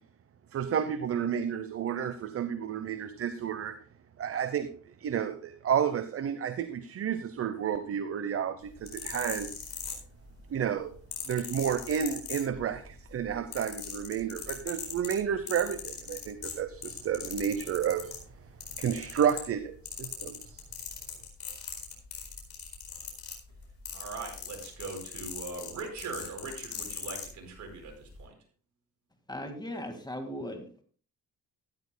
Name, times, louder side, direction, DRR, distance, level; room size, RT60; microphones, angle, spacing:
voice 1, 0.5-3.8 4.2-4.7 5.0-9.6 10.5-10.9 11.3-18.1 18.8-20.6, right 8 dB, 50° right, 12 dB, 0.8 m, -31 dB
sound 1, 8.7-10.4 11.1-12.9 13.2-18.2 18.6-19.6 19.9-27.3 28.0-28.2, left 7 dB, 65° left, 4.2 m, -39 dB
voice 2, 23.9-28.3, right 4 dB, 70° right, 2 dB, 4.9 m, -41 dB
voice 3, 29.3-30.6, left 1 dB, 15° left, 6 dB, 1.9 m, -37 dB
14.0 x 12.5 x 2.2 m, 0.43 s
cardioid pair, 90°, 30 cm